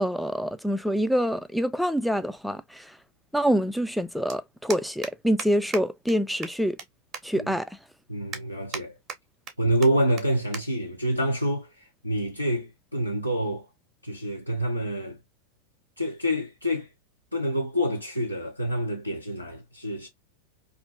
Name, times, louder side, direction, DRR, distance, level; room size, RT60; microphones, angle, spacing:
voice 1, 0.0-3.0 3.3-6.8 7.2-7.8, equal, ahead, 0.3 m, -26 dB
sound 1, 4.3-4.4 4.7-5.1 5.4-5.5 5.7-5.8 6.1-6.2 6.4-6.9 7.1-7.2 7.7-7.8 8.3-8.8 9.1-9.5 9.8-9.9 10.2-10.3 10.5-10.6 11.0-11.2 12.0-12.2, right 7 dB, 35° right, 0.7 m, -36 dB
voice 2, 8.1-9.0 9.6-11.7 12.0-13.7 14.0-15.2 16.0-16.9 17.3-20.1, equal, 90° left, 0.6 m, -27 dB
2.5 x 2.5 x 2.3 m
figure-of-eight pair, 90°, 0 cm